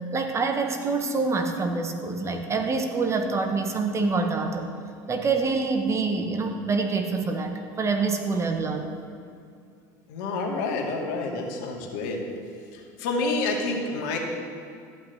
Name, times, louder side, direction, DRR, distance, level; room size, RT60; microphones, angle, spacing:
voice 1, 0.1-4.7 5.1-8.9, right 4 dB, 30° right, 5 dB, 1.7 m, -26 dB
voice 2, 10.1-12.2 12.7-14.2, left 3 dB, 75° left, 1 dB, 2.6 m, -28 dB
14.5 x 6.0 x 9.6 m, 2.4 s
supercardioid pair, 95°, 10 cm